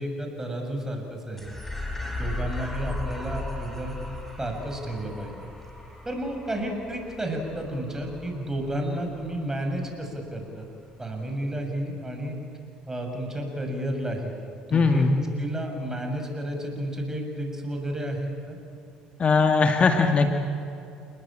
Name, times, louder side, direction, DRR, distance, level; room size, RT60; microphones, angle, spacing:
voice 1, 0.0-1.5 2.2-4.0 4.4-5.5 6.0-10.7 11.0-12.4 12.9-14.3 14.7-18.6, right 1 dB, 15° right, 3 dB, 6.9 m, -31 dB
sound 1, 1.4-10.0, left 2 dB, 5° left, 5.7 m, -37 dB
voice 2, 14.7-15.1 19.2-20.3, left 4 dB, 40° left, 4 dB, 2.0 m, -20 dB
28.5 x 20.5 x 8.9 m, 2.6 s
hypercardioid pair, 70°, 3 cm